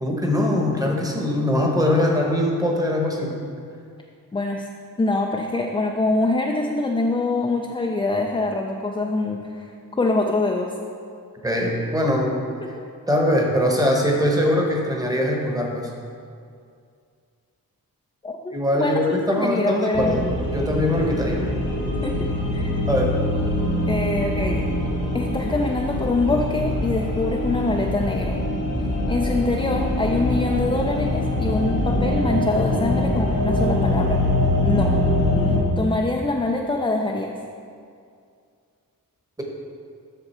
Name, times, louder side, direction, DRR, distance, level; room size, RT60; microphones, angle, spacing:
voice 1, 0.0-3.4 11.4-12.4 13.1-15.9 18.5-20.3 20.5-21.4 22.9-23.1, left 1 dB, 10° right, 0 dB, 0.9 m, -22 dB
voice 2, 4.3-4.7 5.0-10.7 12.6-12.7 18.2-20.2 22.0-22.7 23.9-24.6 25.1-28.4 29.1-34.2 34.6-34.9 35.8-37.3, left 2 dB, 15° left, 1 dB, 0.3 m, -24 dB
sound 1, 19.9-35.6, left 1 dB, 75° left, 1.7 m, -23 dB
7.8 x 6.3 x 4.2 m, 2.3 s
wide cardioid pair, 170°, 35 cm